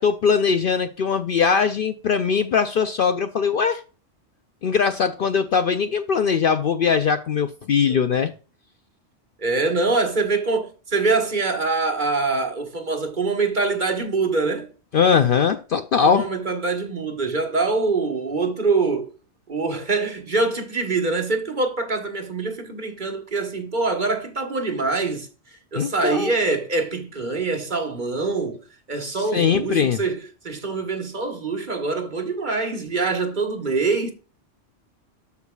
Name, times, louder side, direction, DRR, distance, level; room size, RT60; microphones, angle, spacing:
voice 1, 0.0-3.8 4.6-8.3 14.9-16.3 25.7-26.3 29.1-30.0, left 6 dB, 60° left, 0.6 m, -21 dB
voice 2, 7.9-8.2 9.4-14.7 16.0-19.1 19.5-25.3 25.7-34.1, right 3 dB, 40° right, 1.4 m, -24 dB
13.5 x 4.7 x 2.3 m
omnidirectional pair, 1.2 m